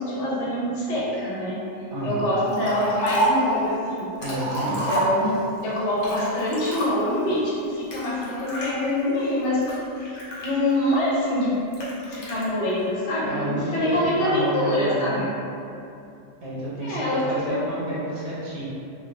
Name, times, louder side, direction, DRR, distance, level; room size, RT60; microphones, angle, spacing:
voice 1, 0.0-1.6 2.0-4.1 4.6-5.3 5.6-9.7 10.4-11.6 12.1-15.3 16.8-17.6, left 1 dB, 85° left, -6 dB, 1.0 m, -25 dB
voice 2, 1.9-2.2 4.2-4.9 13.2-15.3 16.4-18.7, right 1 dB, 60° right, -7 dB, 1.0 m, -30 dB
Liquid, 2.5-3.5 4.0-5.5 6.0-7.2 7.9-8.7 9.3-10.9 11.7-12.5, right 1 dB, 45° left, 0.6 m, -29 dB
3.2 x 2.2 x 2.5 m, 2.7 s
omnidirectional pair, 1.2 m